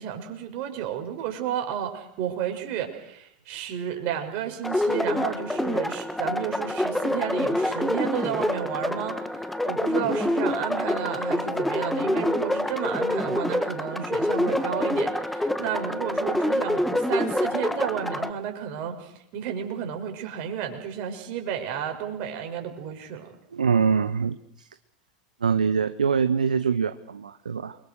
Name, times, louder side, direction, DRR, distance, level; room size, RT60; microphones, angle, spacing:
voice 1, 0.0-23.3, right 9 dB, 45° right, 4 dB, 6.5 m, -32 dB
sound 1, 4.6-18.3, left 1 dB, 5° left, 1.9 m, -26 dB
voice 2, 23.5-24.7 25.4-27.8, right 6 dB, 80° right, 12 dB, 1.1 m, -24 dB
29.0 x 23.5 x 6.6 m, 0.74 s
figure-of-eight pair, 85°, 4 cm